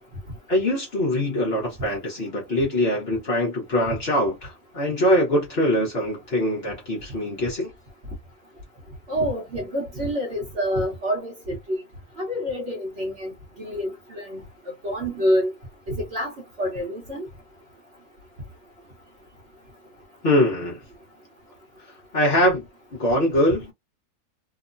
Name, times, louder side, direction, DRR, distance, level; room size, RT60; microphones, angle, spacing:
voice 1, 0.5-7.7 20.2-20.8 22.1-22.7 22.9-23.7, left 1 dB, 45° left, 1.0 m, -23 dB
voice 2, 9.1-11.8 12.2-14.4 14.8-15.5 15.9-16.3 16.6-17.3, equal, 50° right, 1.0 m, -27 dB
2.9 x 2.1 x 2.5 m
omnidirectional pair, 1.7 m